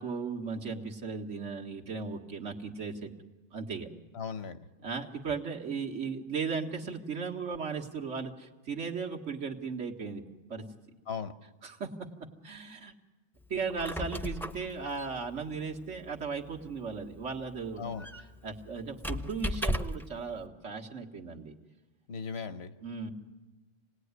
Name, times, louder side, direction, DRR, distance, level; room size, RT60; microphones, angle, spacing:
voice 1, 0.0-3.1 3.5-3.9 4.8-10.2 10.5-10.6 11.6-12.9 13.5-17.9 18.4-21.5 22.8-23.1, right 5 dB, 85° right, 1 dB, 2.1 m, -36 dB
voice 2, 4.1-4.7 11.1-11.3 17.8-18.1 22.1-22.7, left 6 dB, 65° left, 11 dB, 1.3 m, -37 dB
Squeak, 13.5-20.2, equal, ahead, 0.6 m, -37 dB
27.0 x 19.0 x 9.7 m, 1.2 s
omnidirectional pair, 1.2 m